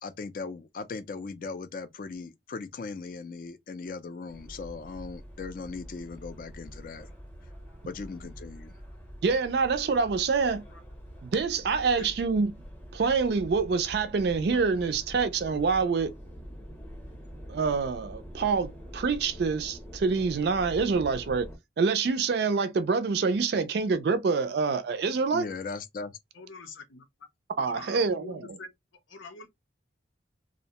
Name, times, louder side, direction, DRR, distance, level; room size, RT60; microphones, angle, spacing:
voice 1, 0.0-7.1 7.9-8.7 25.3-26.2, left 4 dB, 45° left, 0.3 m, -38 dB
sound 1, 4.3-21.6, equal, 10° left, 0.7 m, -45 dB
voice 2, 9.2-10.6 11.2-12.5 12.9-16.1 17.5-21.5 21.8-25.4 27.6-28.6, right 4 dB, 55° right, 0.3 m, -26 dB
voice 3, 11.8-12.1 26.3-27.1 27.6-28.7 29.1-29.5, left 3 dB, 85° left, 0.6 m, -45 dB
2.6 x 2.1 x 2.8 m
head